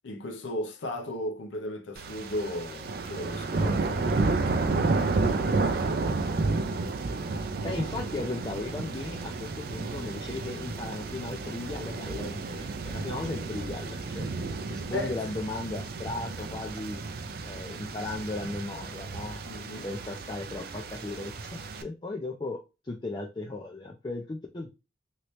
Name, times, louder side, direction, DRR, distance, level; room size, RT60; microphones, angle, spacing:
voice 1, 0.0-6.0 14.9-15.1 19.4-19.9, left 1 dB, 80° left, 0.6 m, -36 dB
sound 1, 2.0-21.8, right 3 dB, 50° right, 0.4 m, -31 dB
voice 2, 7.6-14.3 14.7-17.0 17.4-19.4 19.8-24.7, left 2 dB, 25° left, 0.3 m, -36 dB
3.1 x 2.8 x 3.0 m
head